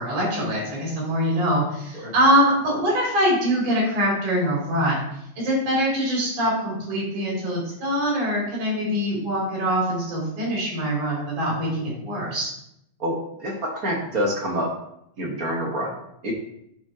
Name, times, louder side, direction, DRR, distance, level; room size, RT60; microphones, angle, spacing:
voice 1, 0.0-5.0 5.4-12.5, equal, 90° right, -5 dB, 4.6 m, -23 dB
voice 2, 13.0-14.7 15.2-16.3, equal, 50° right, -2 dB, 1.1 m, -27 dB
12.0 x 4.4 x 2.9 m, 0.77 s
omnidirectional pair, 3.4 m